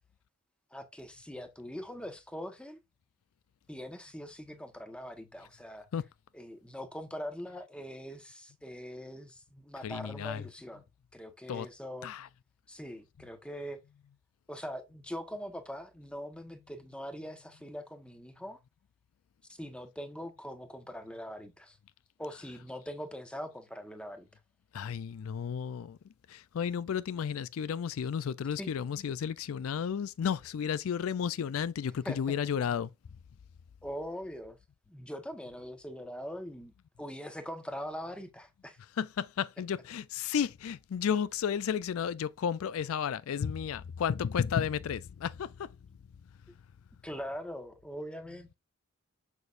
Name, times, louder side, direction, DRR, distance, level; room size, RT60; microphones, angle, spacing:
voice 1, 0.7-2.8 3.7-5.9 6.3-10.8 11.1-12.1 12.7-13.8 14.5-18.6 19.5-21.8 22.2-24.3 28.6-28.7 32.0-32.4 33.8-34.6 34.9-38.8 47.0-48.5, equal, 5° left, 1.1 m, -42 dB
voice 2, 9.8-10.4 11.5-11.7 12.0-12.3 24.7-26.0 26.3-32.9 39.0-45.7, left 7 dB, 75° left, 0.4 m, -33 dB
7.0 x 6.3 x 2.5 m
head